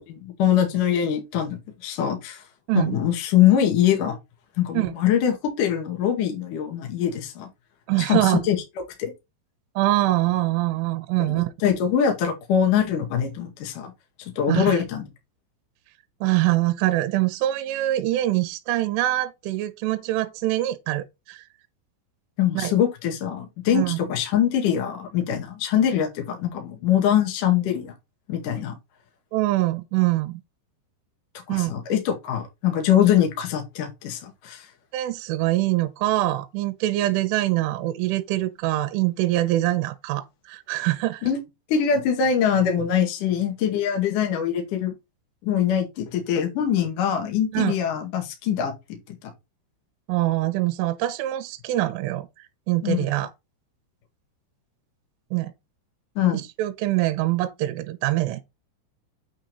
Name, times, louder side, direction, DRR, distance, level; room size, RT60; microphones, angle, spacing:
voice 1, 0.1-2.4 2.7-4.2 4.6-7.5 8.0-8.6 9.0-9.1 11.2-13.9 14.2-15.0 22.4-27.9 28.3-28.7 31.5-34.7 41.2-41.4 41.7-44.9 45.4-49.2 52.8-53.1 56.2-56.4, left 9 dB, 50° left, 2.9 m, -23 dB
voice 2, 7.9-8.5 9.8-11.5 14.5-14.8 16.2-21.4 22.5-22.7 23.7-24.0 29.3-30.4 31.5-31.7 34.9-41.3 47.5-47.8 50.1-53.3 55.3-55.5 56.6-58.4, right 16 dB, 80° right, 3.3 m, -24 dB
9.2 x 4.5 x 4.0 m
omnidirectional pair, 5.8 m